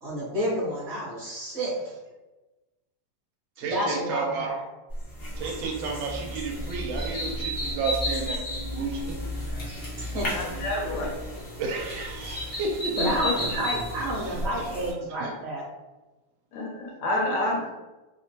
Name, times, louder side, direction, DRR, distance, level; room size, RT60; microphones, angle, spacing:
voice 1, 0.0-1.7 3.6-4.6 10.1-10.3 13.0-15.6, equal, 50° right, -8 dB, 1.1 m, -30 dB
voice 2, 3.6-4.5 5.4-8.4 8.7-9.2 11.6-12.9 13.5-13.7 14.1-14.4 15.2-15.3, right 4 dB, 80° right, 1 dB, 1.3 m, -31 dB
sound 1, 4.9-14.9, equal, 45° left, 0.6 m, -33 dB
voice 3, 10.3-11.1 13.0-13.6 16.5-17.7, left 1 dB, 75° left, 0 dB, 1.2 m, -29 dB
3.3 x 2.1 x 2.7 m, 1.1 s
omnidirectional pair, 2.2 m